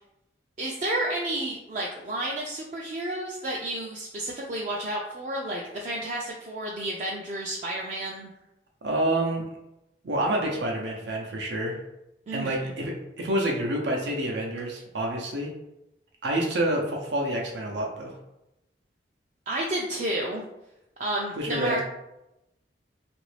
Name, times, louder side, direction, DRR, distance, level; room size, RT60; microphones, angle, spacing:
voice 1, 0.6-8.3 12.3-12.7 19.5-20.4 21.0-21.8, right 1 dB, 45° right, -3 dB, 0.3 m, -31 dB
voice 2, 8.8-9.4 10.0-11.8 12.3-15.5 16.2-18.1 21.4-21.8, right 1 dB, 85° right, 0 dB, 0.6 m, -28 dB
2.9 x 2.5 x 3.2 m, 0.90 s
head